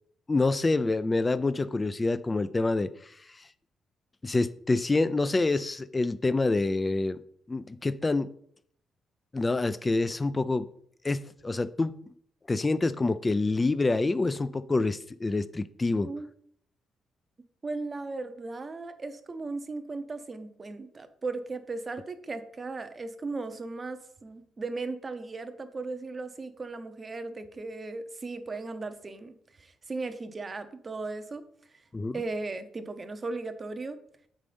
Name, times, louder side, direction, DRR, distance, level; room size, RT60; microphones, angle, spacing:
voice 1, 0.3-2.9 4.2-7.2 7.5-8.3 9.3-10.7 11.0-12.0 12.5-16.1 31.9-32.2, left 3 dB, 25° left, 0.4 m, -27 dB
voice 2, 17.6-31.4 31.7-31.8 32.1-34.0, right 3 dB, 30° right, 0.7 m, -37 dB
7.3 x 5.4 x 3.3 m
cardioid pair, 90°, 0 cm